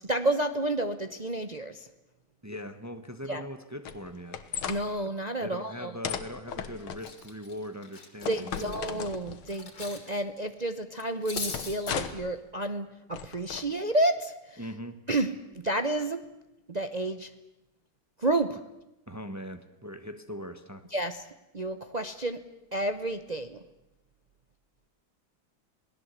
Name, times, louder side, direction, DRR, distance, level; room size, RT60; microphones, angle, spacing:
voice 1, 0.1-1.7 3.3-3.4 4.7-5.9 8.3-14.3 15.1-15.3 15.6-16.2 16.7-17.3 18.2-18.6 20.9-21.1 21.5-22.4 22.7-23.6, right 1 dB, 60° right, 8 dB, 0.4 m, -30 dB
voice 2, 2.4-4.4 5.4-8.8 14.6-15.0 19.1-20.8, equal, 10° right, 8 dB, 0.8 m, -40 dB
sound 1, 3.9-4.8 6.0-7.1 8.2-9.6 11.5-12.3 13.1-13.6, left 8 dB, 90° left, 2.1 m, -36 dB
Cutlery silverware, 6.4-6.6 7.0-10.1 10.4-10.5 11.0-12.0, left 4 dB, 60° left, 3.7 m, -40 dB
27.5 x 18.5 x 8.3 m, 0.94 s
omnidirectional pair, 2.3 m